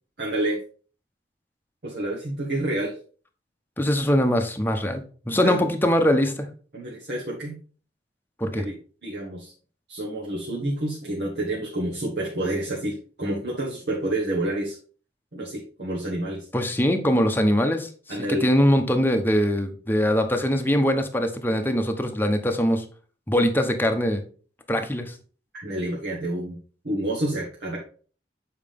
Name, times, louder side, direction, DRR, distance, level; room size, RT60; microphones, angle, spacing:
voice 1, 0.2-0.6 1.8-2.9 5.4-5.6 6.7-7.6 8.4-8.8 9.0-9.5 9.9-14.8 15.3-16.5 18.1-18.5 25.5-26.6 26.8-27.8, right 1 dB, 65° right, -4 dB, 1.5 m, -28 dB
voice 2, 3.8-6.5 8.4-8.6 16.5-17.9 18.4-22.8 23.3-24.2 24.7-25.1, equal, 10° left, 5 dB, 0.9 m, -22 dB
7.2 x 4.8 x 3.5 m, 0.40 s
head